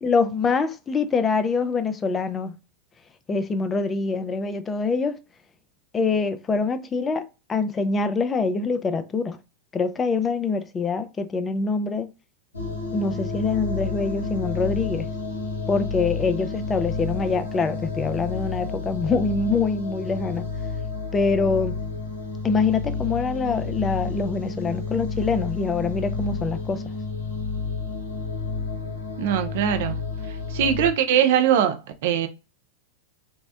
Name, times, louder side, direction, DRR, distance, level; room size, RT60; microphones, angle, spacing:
voice 1, 0.0-2.6 3.3-5.2 5.9-9.4 9.7-12.1 12.9-15.1 15.7-20.5 21.1-21.8 22.4-26.8, left 4 dB, 20° left, 0.3 m, -25 dB
sound 1, 12.5-30.9, left 4 dB, 90° left, 0.7 m, -30 dB
voice 2, 29.2-30.0 30.5-32.3, right 9 dB, 60° right, 0.4 m, -21 dB
2.7 x 2.0 x 2.3 m
figure-of-eight pair, 90°, 0 cm